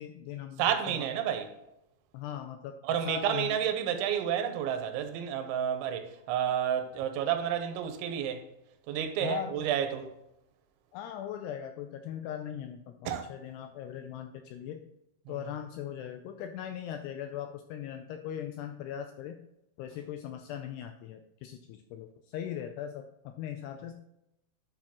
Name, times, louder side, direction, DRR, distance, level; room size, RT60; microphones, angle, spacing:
voice 1, 0.0-1.1 2.1-2.8 3.1-3.6 9.2-9.7 10.9-14.8 15.3-19.4 19.8-23.9, left 10 dB, 85° left, 2.4 m, -39 dB
voice 2, 0.6-1.5 2.8-8.5 8.9-10.1 13.1-13.3 15.3-15.4, right 9 dB, 85° right, 3.2 m, -30 dB
11.5 x 6.6 x 3.0 m
omnidirectional pair, 5.3 m